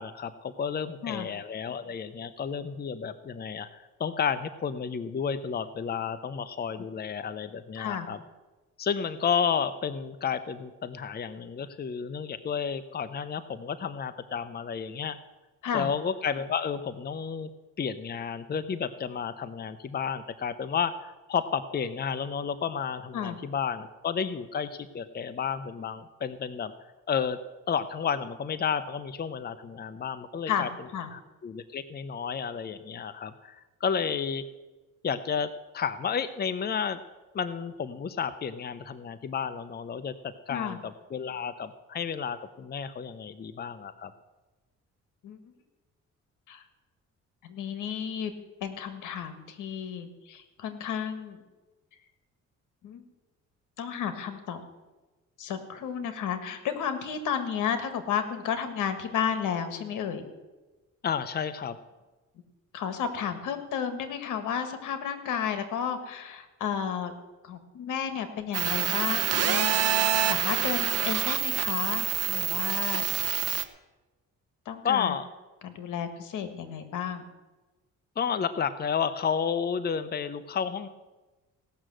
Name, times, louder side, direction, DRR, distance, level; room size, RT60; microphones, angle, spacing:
voice 1, 0.0-8.2 8.8-15.2 15.7-17.5 17.8-26.7 27.1-27.4 27.7-30.7 31.1-34.4 35.0-37.0 37.3-40.1 40.5-44.1 61.0-61.8 74.8-75.3 78.2-80.9, left 7 dB, 30° left, 12 dB, 0.7 m, -31 dB
voice 2, 7.7-8.1 15.6-15.9 23.1-23.4 30.5-31.1 40.5-40.8 45.2-45.4 46.5-46.6 47.4-48.3 48.6-51.4 52.8-53.0 53.8-54.6 55.4-60.2 62.7-67.1 67.4-69.7 69.9-73.0 74.6-75.1 75.6-77.3, left 8 dB, 85° left, 10 dB, 1.6 m, -32 dB
sound 1, 68.5-73.6, right 11 dB, 55° right, 0.9 m, -27 dB
17.0 x 6.3 x 7.7 m, 1.2 s
cardioid pair, 90°, 30 cm